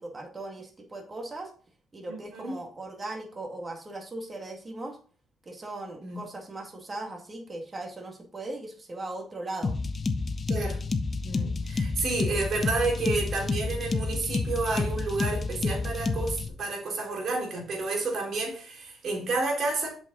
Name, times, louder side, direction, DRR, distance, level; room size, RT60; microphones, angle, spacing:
voice 1, 0.0-1.5 1.9-5.0 5.4-9.7, right 2 dB, 30° right, 2 dB, 2.0 m, -38 dB
voice 2, 2.1-2.5 6.0-6.2 10.5-10.8 11.2-19.9, right 3 dB, 60° right, 0 dB, 3.8 m, -30 dB
sound 1, 9.6-16.5, left 3 dB, 35° left, 1.0 m, -29 dB
7.9 x 6.3 x 3.9 m, 0.42 s
cardioid pair, 90°, 0 cm